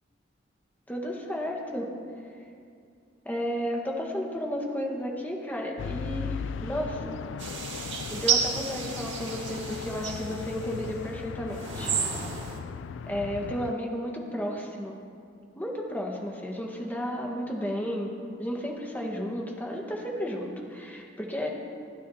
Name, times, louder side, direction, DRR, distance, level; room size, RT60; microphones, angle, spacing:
voice 1, 0.9-1.9 3.2-7.2 8.1-11.9 13.1-15.0 15.6-18.1 18.4-21.5, equal, 10° left, -1 dB, 1.4 m, -33 dB
sound 1, 5.8-13.7, left 6 dB, 90° left, 0.3 m, -37 dB
sound 2, 7.4-10.9 11.5-12.6, right 6 dB, 85° right, 2.0 m, -31 dB
28.5 x 9.8 x 2.9 m, 2.4 s
head